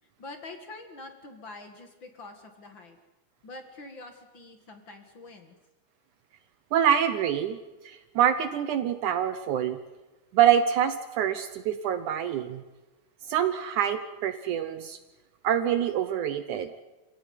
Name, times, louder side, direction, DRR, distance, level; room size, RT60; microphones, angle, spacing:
voice 1, 0.2-3.0 3.4-5.6, left 2 dB, 40° left, 6 dB, 1.8 m, -45 dB
voice 2, 6.7-7.6 7.9-9.8 10.3-12.6 13.3-15.0 15.4-16.7, right 9 dB, 75° right, 10 dB, 1.8 m, -25 dB
28.0 x 16.5 x 9.7 m, 1.1 s
omnidirectional pair, 4.6 m